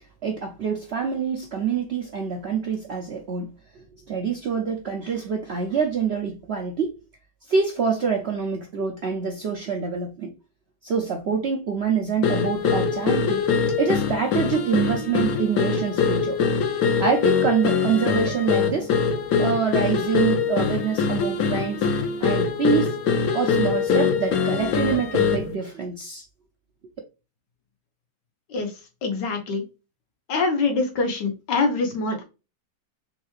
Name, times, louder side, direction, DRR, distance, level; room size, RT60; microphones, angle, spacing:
voice 1, 0.2-3.5 4.1-6.9 7.5-10.3 10.8-13.5 13.8-16.4 17.0-18.9 19.4-21.9 22.2-22.9 23.3-26.2, right 6 dB, 65° right, 0.6 m, -26 dB
sound 1, 12.2-25.5, left 5 dB, 65° left, 1.1 m, -23 dB
voice 2, 29.0-29.6 30.3-32.2, left 3 dB, 85° left, 1.7 m, -24 dB
3.7 x 3.2 x 3.1 m
omnidirectional pair, 1.8 m